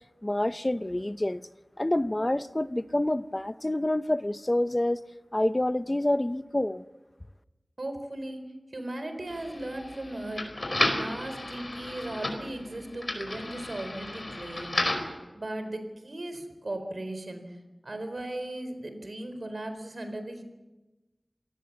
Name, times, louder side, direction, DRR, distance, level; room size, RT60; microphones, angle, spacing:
voice 1, 0.2-1.4 1.8-5.0 5.3-6.8, left 1 dB, 30° left, 13 dB, 0.8 m, -27 dB
voice 2, 7.8-8.5 8.7-10.4 10.9-14.8 15.3-17.6 17.8-20.4, right 1 dB, 75° right, 8 dB, 4.1 m, -37 dB
sound 1, 9.3-15.2, left 2 dB, 60° left, 4.9 m, -33 dB
27.5 x 18.5 x 7.3 m, 1.1 s
wide cardioid pair, 40°, 0 cm